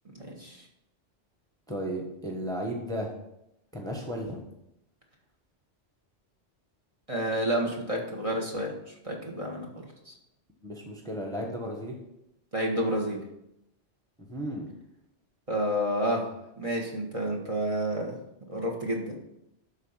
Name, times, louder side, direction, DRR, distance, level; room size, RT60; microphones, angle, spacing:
voice 1, 0.1-0.6 7.1-8.7 9.0-9.7 10.1-10.2 12.5-13.2 15.5-16.3 16.6-18.1 18.5-19.1, equal, 30° right, 0 dB, 1.5 m, -29 dB
voice 2, 1.7-3.1 3.7-4.4 10.6-12.0 14.2-14.7, equal, 5° left, 0 dB, 1.2 m, -34 dB
11.5 x 4.2 x 5.7 m, 0.83 s
omnidirectional pair, 1.2 m